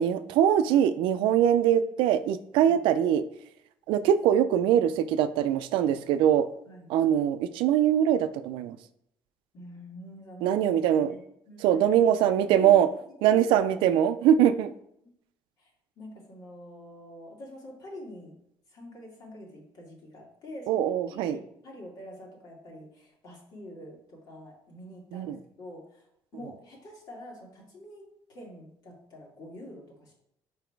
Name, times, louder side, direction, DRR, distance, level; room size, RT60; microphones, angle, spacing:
voice 1, 0.0-3.2 3.9-6.5 6.9-8.8 10.4-11.1 11.6-12.9 13.2-14.7 20.7-21.4 25.1-25.4, right 10 dB, 85° right, 12 dB, 0.4 m, -22 dB
voice 2, 9.5-12.8 13.2-13.6 15.0-15.1 15.6-15.7 16.0-18.3 18.7-26.1 26.3-28.0 28.3-30.1, left 1 dB, 55° left, -2 dB, 2.4 m, -46 dB
5.0 x 4.8 x 4.6 m, 0.75 s
cardioid pair, 120°, 8 cm